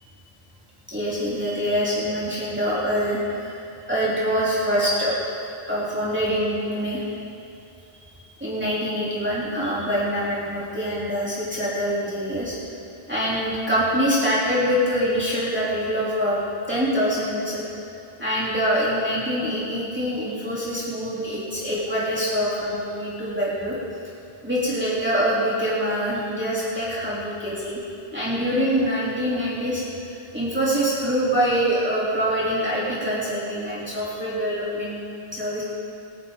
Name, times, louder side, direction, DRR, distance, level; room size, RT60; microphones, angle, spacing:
voice 1, 0.9-3.6 3.9-5.1 5.7-7.1 8.0-8.1 8.4-12.6 13.1-16.4 16.7-17.7 18.2-23.7 24.4-27.8 28.1-35.0 35.3-35.6, equal, 10° right, -9 dB, 3.2 m, -24 dB
24.0 x 10.5 x 3.8 m, 2.7 s
omnidirectional pair, 1.1 m